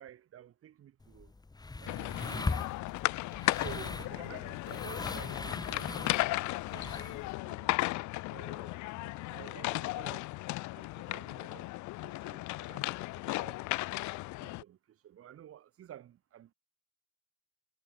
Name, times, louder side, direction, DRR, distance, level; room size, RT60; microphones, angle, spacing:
voice 1, 0.0-1.3 1.8-2.9 3.6-7.8 8.3-10.3 10.6-11.7 12.0-12.9 13.1-13.6 14.4-16.5, right 11 dB, 50° right, 2.4 m, -52 dB
sound 1, 1.0-7.3, left 3 dB, 15° left, 1.5 m, -40 dB
sound 2, 1.9-14.6, left 20 dB, 80° left, 0.7 m, -35 dB
cardioid pair, 125°, 29 cm